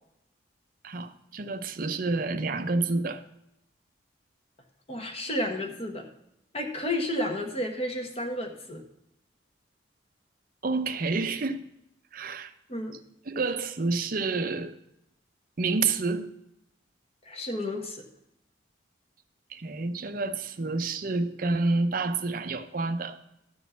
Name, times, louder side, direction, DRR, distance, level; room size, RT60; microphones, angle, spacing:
voice 1, 0.8-3.2 10.6-11.6 12.1-12.5 13.3-14.8 15.6-16.3 19.5-23.2, right 3 dB, 45° right, 0.6 m, -29 dB
voice 2, 4.9-6.1 6.5-8.8 12.7-13.0 17.2-18.0, left 1 dB, 30° left, 1.2 m, -31 dB
12.5 x 4.3 x 6.8 m
head